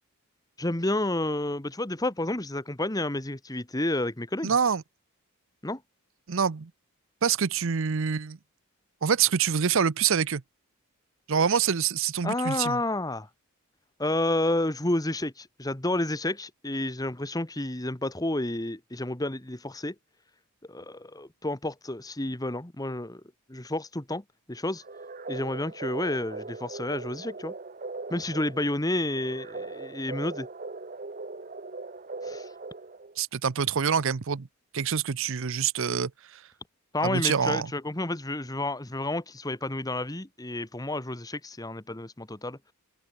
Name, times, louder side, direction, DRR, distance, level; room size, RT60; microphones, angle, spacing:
voice 1, 0.6-4.5 5.6-5.8 12.2-13.3 14.0-19.9 20.7-23.2 23.5-24.8 25.3-27.5 28.1-30.5 32.2-32.5 36.9-42.6, left 1 dB, 15° left, 1.3 m, -30 dB
voice 2, 4.4-4.8 6.3-6.7 7.2-8.4 9.0-10.4 11.3-12.8 33.2-34.5 34.7-36.1 37.0-37.7, right 7 dB, 60° right, 0.6 m, -26 dB
sound 1, 24.8-33.2, right 3 dB, 35° right, 1.0 m, -39 dB
open air
head